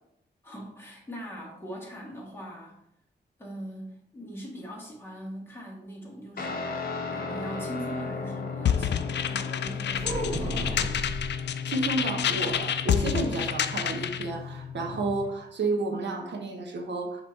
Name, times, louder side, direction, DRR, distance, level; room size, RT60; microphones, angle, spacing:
voice 1, 0.4-2.8 3.4-10.9, equal, 10° left, -4 dB, 2.0 m, -41 dB
Guitar, 6.4-15.3, left 5 dB, 55° left, 1.0 m, -35 dB
sound 1, 8.7-14.3, left 9 dB, 70° left, 0.4 m, -29 dB
sound 2, 9.9-11.4 13.1-14.1 14.4-14.5 14.8-15.1, equal, 35° right, 1.6 m, -33 dB
voice 2, 11.7-17.2, right 3 dB, 75° right, 2 dB, 1.0 m, -31 dB
7.9 x 3.1 x 4.1 m, 0.77 s
wide cardioid pair, 130°, 19 cm